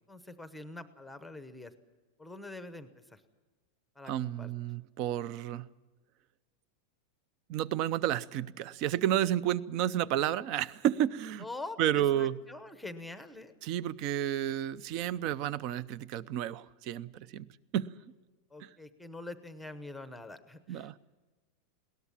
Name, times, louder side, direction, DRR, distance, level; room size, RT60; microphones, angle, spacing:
voice 1, 0.1-1.7 2.2-3.2 4.0-4.5 11.4-13.5 18.5-21.0, left 2 dB, ahead, 0.8 m, -45 dB
voice 2, 4.1-5.7 7.5-11.4 11.8-12.4 13.6-17.5 17.7-17.9 20.7-20.9, right 11 dB, 35° right, 0.6 m, -31 dB
21.5 x 18.0 x 7.4 m
supercardioid pair, 175°, 0 cm